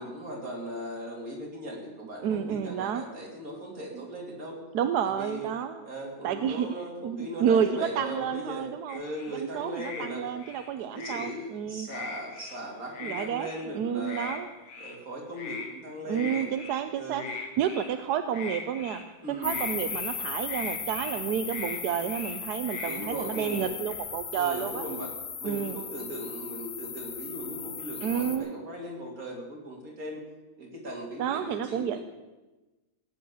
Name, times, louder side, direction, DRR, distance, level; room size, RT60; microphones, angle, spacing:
voice 1, 0.0-4.6 5.0-5.5 5.8-10.3 10.8-14.4 14.8-16.5 17.0-17.3 19.2-19.6 22.8-23.7 24.3-25.1 25.4-30.2 30.6-32.0, equal, 45° right, -1 dB, 3.6 m, -38 dB
voice 2, 2.2-3.0 3.9-4.1 4.7-5.8 6.2-9.0 9.3-11.9 13.0-13.5 13.7-14.5 16.1-19.0 19.4-24.8 25.4-25.8 28.0-28.5 31.2-32.0, right 8 dB, 65° right, 9 dB, 1.1 m, -30 dB
sound 1, 8.9-9.4 9.7-10.1 10.4-11.3 11.8-12.6 12.9-13.7 14.1-14.4 14.6-15.0 15.3-15.7 16.1-16.8 17.1-18.0 18.3-19.0 19.4-20.2 20.4-21.2 21.5-21.8 22.1-22.4 22.6-23.0 23.3-23.9, left 4 dB, 75° left, 2.3 m, -40 dB
sound 2, 19.4-28.4, left 6 dB, 45° left, 1.2 m, -37 dB
17.5 x 8.9 x 7.0 m, 1.1 s
omnidirectional pair, 2.1 m